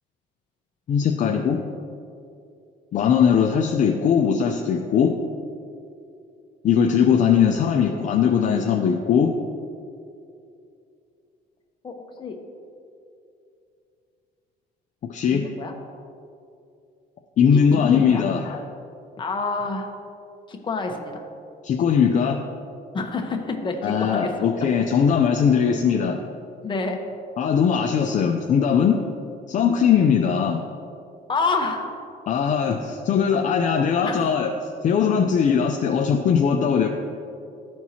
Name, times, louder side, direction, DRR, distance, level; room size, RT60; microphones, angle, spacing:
voice 1, 0.9-1.6 2.9-5.1 6.6-9.3 15.1-15.4 17.4-18.6 21.6-22.4 23.8-26.2 27.4-29.0 29.5-30.6 32.3-34.5 34.8-36.9, left 7 dB, 45° left, 3 dB, 0.5 m, -20 dB
voice 2, 15.3-15.7 17.5-18.2 19.2-19.9 20.5-21.2 22.9-24.3 26.6-27.0 29.6-29.7 31.3-32.0 34.0-34.3, left 3 dB, 30° left, 2 dB, 1.0 m, -28 dB
13.5 x 4.5 x 2.8 m, 2.5 s
cardioid pair, 110°, 17 cm